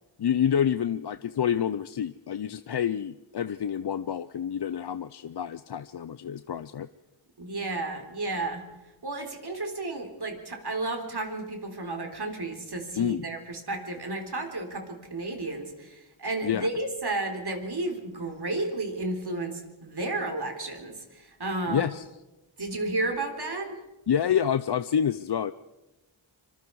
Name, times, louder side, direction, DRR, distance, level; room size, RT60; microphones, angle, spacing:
voice 1, 0.2-6.9 13.0-13.3 16.4-16.7 21.7-22.0 24.1-25.5, left 8 dB, 55° left, 13 dB, 0.6 m, -28 dB
voice 2, 7.4-8.6 9.0-21.9 22.6-23.8, right 2 dB, 55° right, 4 dB, 3.9 m, -32 dB
25.5 x 25.0 x 4.8 m, 1.1 s
wide cardioid pair, 65°, 48 cm